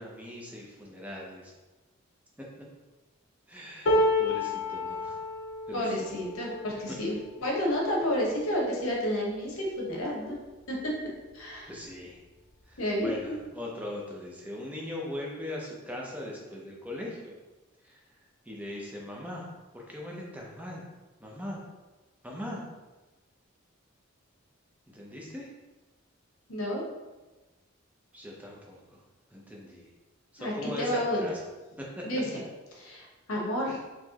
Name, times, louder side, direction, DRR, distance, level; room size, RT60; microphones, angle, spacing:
voice 1, 0.0-1.5 3.5-5.2 5.7-6.1 6.9-7.0 11.6-12.2 12.7-17.3 17.8-18.0 18.5-19.5 19.7-20.9 21.2-21.6 22.2-22.6 24.9-25.5 28.1-28.8 29.3-29.9 30.3-31.4 31.8-32.0, left 1 dB, 5° right, -3 dB, 0.6 m, -40 dB
sound 1, 3.9-10.0 10.6-10.8 11.1-11.8 12.8-12.9, left 1 dB, 60° left, 0.6 m, -32 dB
voice 2, 5.7-10.4 10.7-10.9 11.3-11.7 12.8-13.4 26.5-26.8 30.4-31.3 32.0-32.4 32.7-33.8, equal, 80° left, -3 dB, 1.1 m, -30 dB
4.2 x 3.0 x 2.9 m, 1.2 s
head